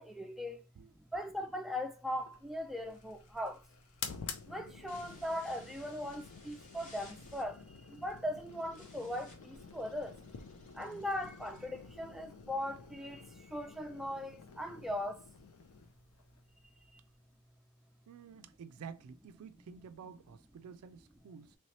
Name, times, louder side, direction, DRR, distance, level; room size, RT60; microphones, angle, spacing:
voice 1, 0.0-0.6 1.0-3.6 4.5-10.2 10.7-15.3 16.9-17.0, left 1 dB, ahead, 0.3 m, -39 dB
sound 1, 2.2-17.5, left 6 dB, 85° left, 0.5 m, -50 dB
sound 2, 2.9-12.4, left 2 dB, 35° left, 0.9 m, -61 dB
voice 2, 18.1-21.6, right 6 dB, 90° right, 0.4 m, -50 dB
3.2 x 3.1 x 2.7 m
head